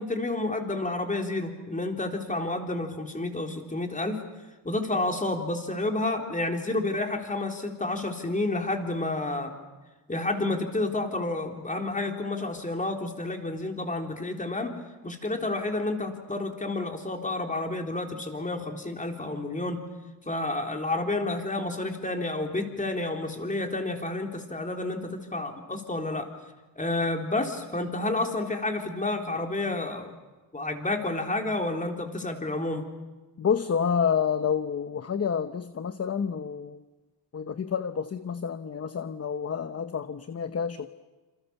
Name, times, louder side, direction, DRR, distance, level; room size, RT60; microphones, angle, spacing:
voice 1, 0.0-4.2 4.6-9.5 10.1-14.7 15.0-19.8 20.2-26.3 26.8-30.1 30.5-32.8, left 2 dB, 20° left, 3 dB, 3.9 m, -30 dB
voice 2, 33.4-36.8 37.3-40.9, left 7 dB, 35° left, 11 dB, 1.0 m, -29 dB
28.0 x 27.5 x 7.1 m, 1.2 s
cardioid pair, 110°, 42 cm